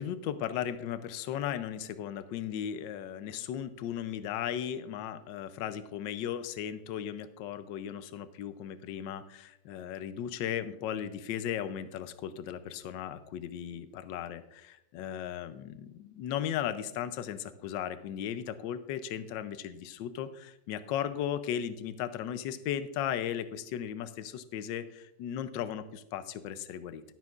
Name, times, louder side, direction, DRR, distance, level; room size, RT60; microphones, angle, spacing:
voice 1, 0.0-27.0, left 9 dB, 80° left, 11 dB, 1.3 m, -36 dB
13.0 x 12.0 x 2.4 m, 0.86 s
omnidirectional pair, 2.0 m